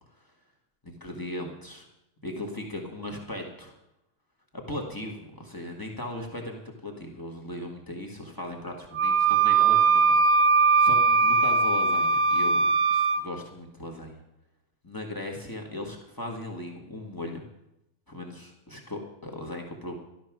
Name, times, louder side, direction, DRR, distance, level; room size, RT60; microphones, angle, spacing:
voice 1, 0.8-1.8 2.2-3.7 4.5-12.6 12.9-14.2 14.8-17.4 18.1-19.9, left 1 dB, 25° left, 0 dB, 0.4 m, -38 dB
Wind instrument woodwind instrument, 8.9-13.2, right 4 dB, 75° right, 2.1 m, -20 dB
13.5 x 12.0 x 6.1 m, 0.90 s
omnidirectional pair, 3.6 m